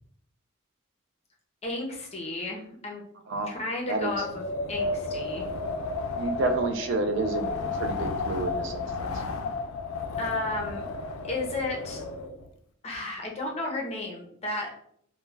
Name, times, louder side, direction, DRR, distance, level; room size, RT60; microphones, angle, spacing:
voice 1, 1.6-3.0 3.5-4.4 4.7-5.5 10.2-10.8 11.2-12.0 12.8-14.7, left 2 dB, 30° left, -1 dB, 0.5 m, -33 dB
Wind, 4.0-12.5, left 3 dB, 80° left, 0.3 m, -32 dB
voice 2, 6.2-7.5 7.8-9.2, right 3 dB, 60° right, 6 dB, 0.3 m, -29 dB
2.2 x 2.1 x 3.2 m, 0.66 s
head